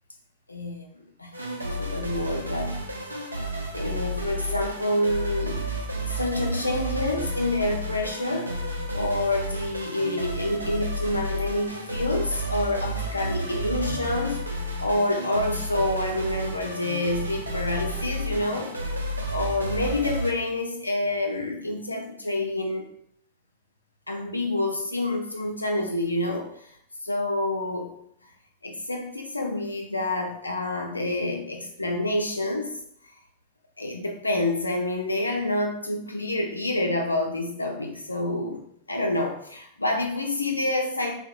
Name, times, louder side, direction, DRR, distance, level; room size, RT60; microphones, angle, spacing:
voice 1, 0.5-0.9 1.2-1.3 1.6-2.8 3.7-8.6 8.9-18.7 19.3-22.9 24.1-26.7 27.0-27.9 28.6-32.7 33.8-41.1, left 2 dB, 85° left, 2 dB, 0.3 m, -28 dB
sound 1, 1.3-20.3, right 1 dB, 80° right, 0.3 m, -31 dB
2.6 x 2.1 x 2.5 m, 0.69 s
figure-of-eight pair, 90°, 0 cm